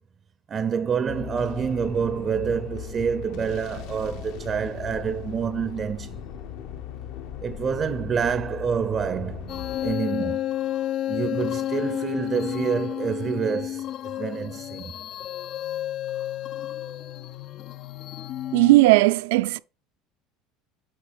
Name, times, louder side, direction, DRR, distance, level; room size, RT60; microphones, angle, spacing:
voice 1, 0.5-6.2 7.4-10.4 11.1-14.9, right 6 dB, 25° right, 0.5 m, -27 dB
sound 1, 1.1-9.9, left 10 dB, 65° left, 1.0 m, -38 dB
sound 2, 9.5-18.8, left 12 dB, 45° left, 0.3 m, -31 dB
voice 2, 18.5-19.6, right 20 dB, 85° right, 0.5 m, -17 dB
8.8 x 4.5 x 3.4 m
cardioid pair, 145°, 0 cm